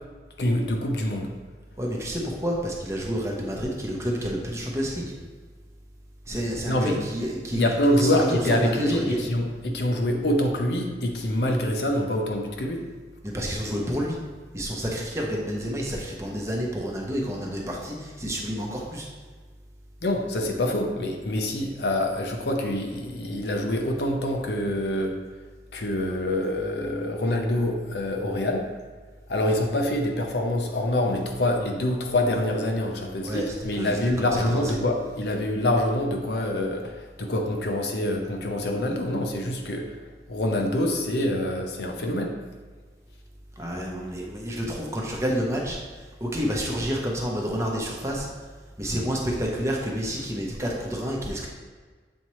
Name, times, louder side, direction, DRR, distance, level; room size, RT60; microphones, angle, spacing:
voice 1, 0.4-1.3 6.7-7.0 7.5-12.8 20.0-25.2 25.7-28.7 29.3-40.0 40.3-42.3, left 1 dB, 70° left, 3 dB, 0.7 m, -25 dB
voice 2, 1.8-5.1 6.3-7.6 8.0-9.3 13.2-14.2 14.5-19.1 33.2-34.7 43.6-48.3 48.8-51.5, equal, 15° right, -2 dB, 0.8 m, -29 dB
7.2 x 4.2 x 3.1 m, 1.4 s
head